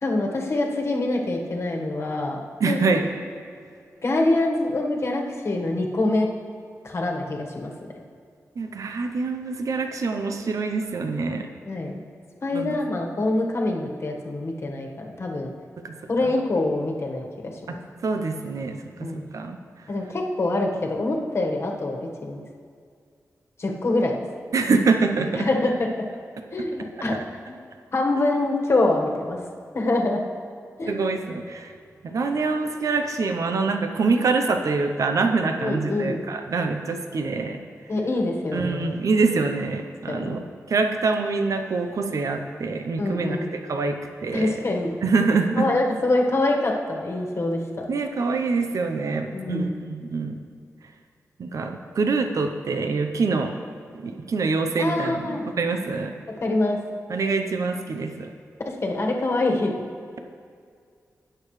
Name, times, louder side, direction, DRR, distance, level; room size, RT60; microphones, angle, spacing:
voice 1, 0.0-2.4 2.6-2.8 4.0-6.3 6.8-7.7 11.6-11.9 12.4-15.5 16.1-17.8 19.0-19.3 19.9-22.4 23.6-24.2 25.4-25.9 26.5-27.2 27.5-27.6 27.9-29.4 29.7-30.2 30.8-30.9 35.6-36.2 37.9-39.0 40.1-40.4 43.0-43.5 44.3-44.9 45.6-47.8 49.3-49.7 54.8-55.5 56.3-56.8 58.6-59.7, left 2 dB, 50° left, 0 dB, 1.4 m, -25 dB
voice 2, 2.6-3.1 8.6-11.5 12.5-12.8 15.8-16.0 16.2-16.3 18.0-19.6 24.5-25.5 30.9-31.7 32.0-37.6 38.5-40.4 40.7-43.4 43.6-44.6 45.0-45.7 47.9-50.4 51.4-53.6 53.9-56.1 57.1-58.3, right 4 dB, 70° right, 6 dB, 0.7 m, -25 dB
18.5 x 6.8 x 3.2 m, 2.2 s
wide cardioid pair, 90°, 6 cm